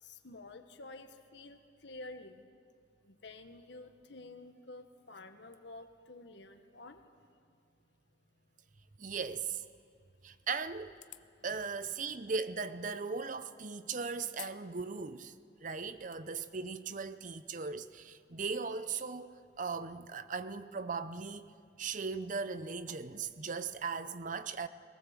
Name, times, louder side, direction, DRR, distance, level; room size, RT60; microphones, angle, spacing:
voice 1, 0.0-2.5 3.0-7.0 11.5-11.6, left 2 dB, 65° left, 1.3 m, -50 dB
voice 2, 9.0-9.6 10.2-10.9 11.4-15.3 15.6-21.5 21.8-24.7, right 5 dB, 40° right, 0.6 m, -38 dB
sound 1, 10.9-11.4 12.4-12.5 14.3-14.6 15.0-15.1 15.8-16.2, left 13 dB, 40° left, 0.5 m, -49 dB
20.0 x 18.5 x 7.4 m
head